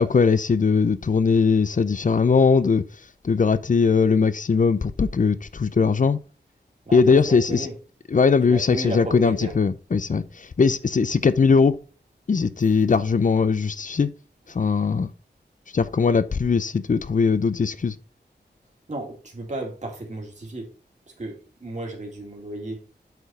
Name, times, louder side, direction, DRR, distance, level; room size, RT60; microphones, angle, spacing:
voice 1, 0.0-2.8 3.2-6.2 6.9-7.7 8.1-11.7 12.3-14.1 14.5-15.1 15.7-17.9, left 5 dB, 45° left, 0.6 m, -20 dB
voice 2, 6.9-7.8 8.4-9.6 18.9-20.7 21.2-22.8, right 2 dB, 40° right, 2.2 m, -34 dB
8.0 x 4.6 x 4.2 m
wide cardioid pair, 65°, 18 cm